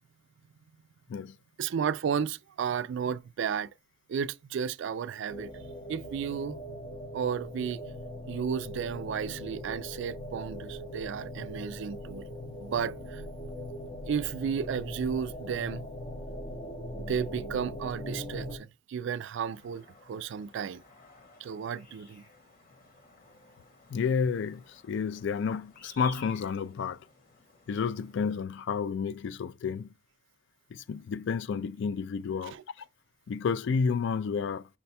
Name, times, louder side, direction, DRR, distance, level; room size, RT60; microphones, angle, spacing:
voice 1, 1.6-3.7 4.1-5.5 5.9-6.6 7.1-7.8 8.3-12.2 12.6-13.2 14.1-15.8 17.0-20.8 21.4-22.2 32.4-32.6, right 7 dB, 65° right, 0.3 m, -33 dB
sound 1, 5.3-18.6, equal, 30° left, 0.7 m, -40 dB
sound 2, 19.4-28.4, left 2 dB, 45° left, 1.3 m, -55 dB
voice 2, 23.9-27.0 27.7-29.9 30.7-32.6 33.3-34.7, left 6 dB, 65° left, 0.3 m, -30 dB
5.7 x 2.2 x 4.1 m
head